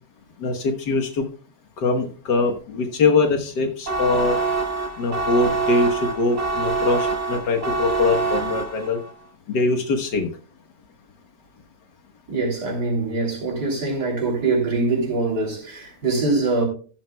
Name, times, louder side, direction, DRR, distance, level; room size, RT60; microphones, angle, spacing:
voice 1, 0.4-1.3 1.8-4.4 5.0-9.0 9.5-10.3, left 3 dB, 90° left, 1.9 m, -22 dB
sound 1, 3.9-9.1, right 3 dB, 40° right, 2.7 m, -25 dB
voice 2, 12.3-16.7, right 3 dB, 75° right, 3.8 m, -23 dB
13.5 x 12.5 x 2.3 m
omnidirectional pair, 1.8 m